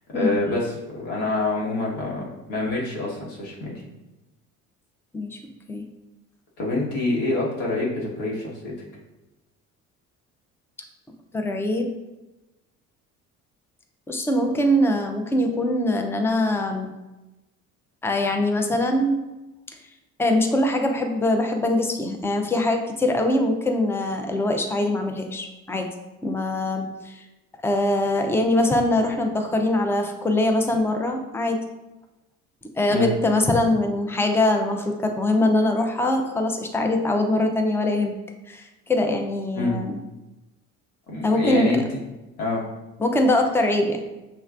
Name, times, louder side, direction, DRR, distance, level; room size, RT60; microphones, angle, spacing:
voice 1, 0.1-3.7 6.6-8.7 32.9-33.1 39.5-39.7 41.1-41.8 42.4-42.6, left 2 dB, 60° left, -4 dB, 1.5 m, -26 dB
voice 2, 11.3-11.9 14.1-16.9 18.0-19.2 20.2-25.9 26.2-27.2 27.6-31.6 32.8-38.1 38.5-40.0 41.2-41.8 43.0-44.0, left 1 dB, 5° left, 4 dB, 0.5 m, -22 dB
6.5 x 3.2 x 2.4 m, 1.0 s
figure-of-eight pair, 55°, 43 cm